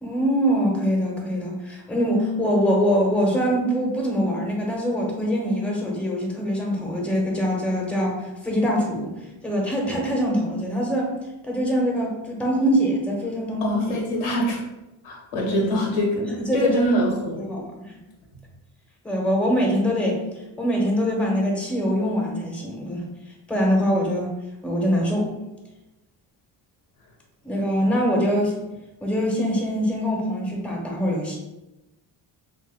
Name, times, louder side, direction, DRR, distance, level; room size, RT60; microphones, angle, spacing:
voice 1, 0.0-9.1 9.4-11.1 11.5-14.0 15.4-15.7 16.4-17.0 17.4-17.9 19.0-20.2 20.6-23.0 23.5-24.3 24.6-25.3 27.4-28.6 29.0-31.4, equal, ahead, -1 dB, 0.9 m, -23 dB
voice 2, 13.6-14.6 15.0-17.4, equal, 85° left, -2 dB, 1.1 m, -24 dB
3.0 x 2.2 x 3.5 m, 0.98 s
supercardioid pair, 65°, 50 cm